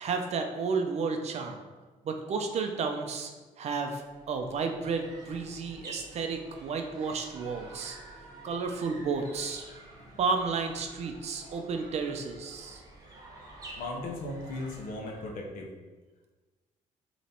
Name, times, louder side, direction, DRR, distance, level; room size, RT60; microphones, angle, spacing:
voice 1, 0.0-1.6 2.0-3.3 3.6-4.0 4.3-8.0 8.4-9.6 10.2-12.8, right 4 dB, 50° right, 4 dB, 0.7 m, -32 dB
sound 1, 4.0-15.5, right 2 dB, 25° right, 1.2 m, -49 dB
voice 2, 13.8-15.7, left 2 dB, 80° left, 0 dB, 1.3 m, -37 dB
7.1 x 3.1 x 4.4 m, 1.3 s
cardioid pair, 165°, 14 cm